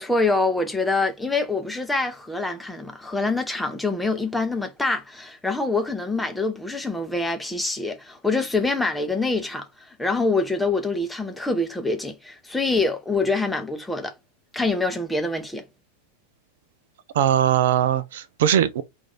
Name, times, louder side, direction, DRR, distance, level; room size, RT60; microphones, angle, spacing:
voice 1, 0.0-14.1 14.5-15.6, left 3 dB, 5° left, 0.7 m, -25 dB
voice 2, 17.1-18.8, right 10 dB, 55° right, 0.4 m, -20 dB
3.0 x 2.5 x 3.7 m
figure-of-eight pair, 90°, 0 cm